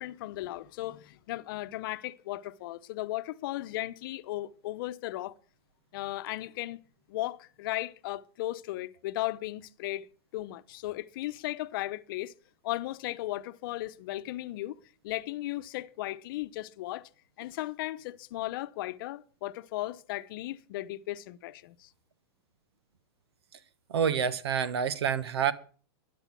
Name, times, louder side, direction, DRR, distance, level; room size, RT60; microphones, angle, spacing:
voice 1, 0.0-5.3 5.9-6.8 7.1-10.1 10.3-12.3 12.6-14.8 15.0-17.1 17.4-21.9, left 16 dB, 60° left, 0.8 m, -36 dB
voice 2, 23.9-25.5, right 7 dB, 85° right, 1.2 m, -27 dB
13.0 x 10.5 x 6.0 m
hypercardioid pair, 130°, 13 cm